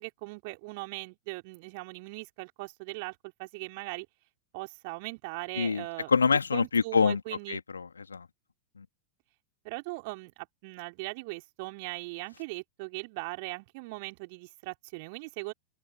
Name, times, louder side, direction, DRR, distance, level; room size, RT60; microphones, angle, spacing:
voice 1, 0.0-4.1 4.5-6.1 6.5-7.6 9.6-15.5, right 28 dB, 45° right, 4.4 m, -39 dB
voice 2, 5.6-7.2 7.5-8.3 8.8-8.9, left 5 dB, 75° left, 2.7 m, -26 dB
open air
figure-of-eight pair, 90°, 0 cm